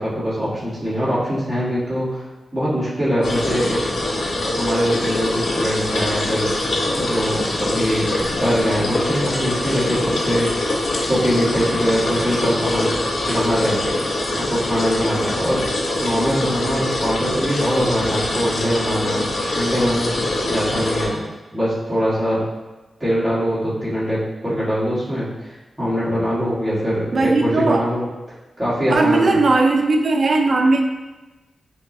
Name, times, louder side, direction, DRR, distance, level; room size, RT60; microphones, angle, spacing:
voice 1, 0.0-2.2 2.5-3.8 4.6-6.5 7.0-10.7 11.1-12.9 13.3-14.0 14.3-15.6 16.0-21.2 21.5-22.4 23.0-28.0 28.6-29.4, equal, 10° right, -10 dB, 1.3 m, -22 dB
sound 1, 3.2-21.1, left 1 dB, 65° left, 0.5 m, -23 dB
voice 2, 27.1-27.8 28.9-30.8, right 3 dB, 55° right, 4 dB, 0.4 m, -17 dB
5.5 x 2.0 x 2.6 m, 1.1 s
wide cardioid pair, 120°, 0 cm